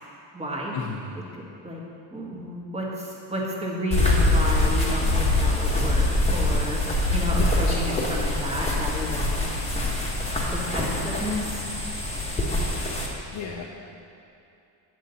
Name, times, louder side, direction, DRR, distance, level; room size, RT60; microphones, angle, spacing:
voice 1, 0.3-0.8 1.1-1.2 1.6-1.8 2.1-9.4 10.5-11.6, equal, 15° right, -4 dB, 1.6 m, -31 dB
sound 1, 3.9-13.1, left 2 dB, 15° left, 1.4 m, -24 dB
voice 2, 13.3-13.6, left 6 dB, 70° left, -3 dB, 0.9 m, -32 dB
8.4 x 7.7 x 4.1 m, 2.6 s
cardioid pair, 115°, 43 cm